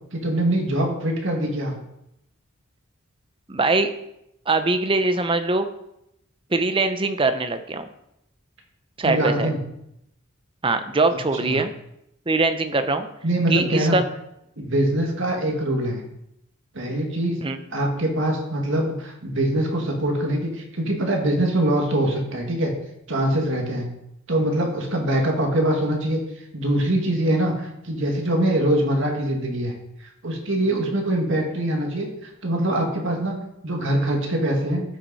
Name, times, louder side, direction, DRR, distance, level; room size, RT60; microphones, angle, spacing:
voice 1, 0.1-1.8 9.0-9.6 11.4-11.6 13.2-14.0 14.6-16.0 16.7-17.4 17.7-22.7 23.1-23.9 24.3-26.2 26.5-29.7 30.2-34.8, right 1 dB, 60° right, 1 dB, 2.0 m, -23 dB
voice 2, 3.5-3.9 4.5-5.6 6.5-7.9 9.0-9.5 10.6-11.7 12.3-13.1 13.5-14.0 17.4-17.6, right 3 dB, 25° right, 9 dB, 0.7 m, -22 dB
13.5 x 6.0 x 4.2 m, 0.81 s
head